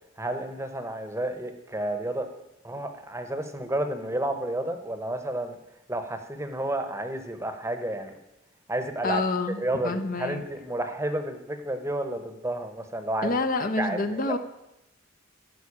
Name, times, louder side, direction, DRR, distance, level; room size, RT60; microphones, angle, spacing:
voice 1, 0.2-2.3 2.6-5.5 5.9-8.2 8.7-9.2 9.6-13.4 13.8-14.4, right 1 dB, 15° right, 8 dB, 1.0 m, -31 dB
voice 2, 9.0-9.6 9.8-10.4 13.2-14.4, left 3 dB, 40° left, 8 dB, 0.7 m, -27 dB
13.0 x 5.8 x 8.6 m, 0.89 s
head